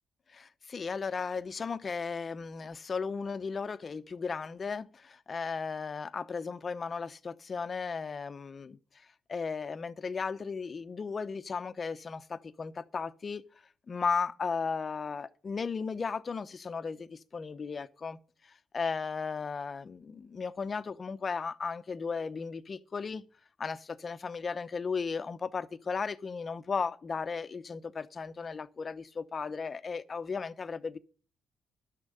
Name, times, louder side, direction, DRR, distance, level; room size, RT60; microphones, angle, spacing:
voice 1, 0.3-8.8 9.3-13.4 13.9-18.2 18.4-23.2 23.6-31.0, left 5 dB, 40° left, 0.9 m, -35 dB
11.5 x 6.4 x 8.6 m
cardioid pair, 90°, 0 cm